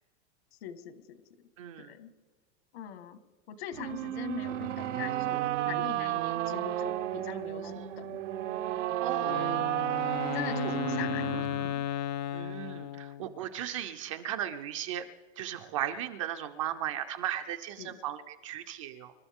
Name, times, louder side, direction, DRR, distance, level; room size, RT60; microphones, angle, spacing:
voice 1, 0.6-1.2 1.8-2.1 2.7-3.2 3.5-8.1 9.3-9.7 10.3-11.9 17.8-18.0, left 10 dB, 60° left, 9 dB, 1.6 m, -42 dB
voice 2, 1.6-1.9 7.6-8.0 9.0-9.5 12.3-15.0 15.4-19.1, right 11 dB, 30° right, 7 dB, 0.4 m, -36 dB
sound 1, 3.7-11.7, right 13 dB, 90° right, 1.0 m, -32 dB
Wind instrument woodwind instrument, 9.2-13.4, left 10 dB, 40° left, 0.4 m, -35 dB
28.0 x 13.0 x 3.6 m, 1.4 s
supercardioid pair, 180°, 35 cm